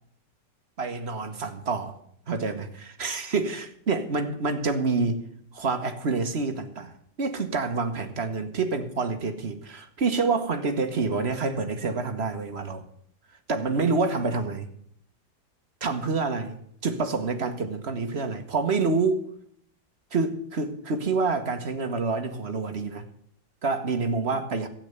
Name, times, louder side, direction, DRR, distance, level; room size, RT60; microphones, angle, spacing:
voice 1, 0.8-2.0 2.3-5.2 5.5-6.9 7.2-12.8 13.5-14.7 15.8-19.3 20.1-23.0 23.6-24.7, right 4 dB, 40° right, 1.3 m, -27 dB
13.0 x 8.9 x 6.8 m
omnidirectional pair, 2.0 m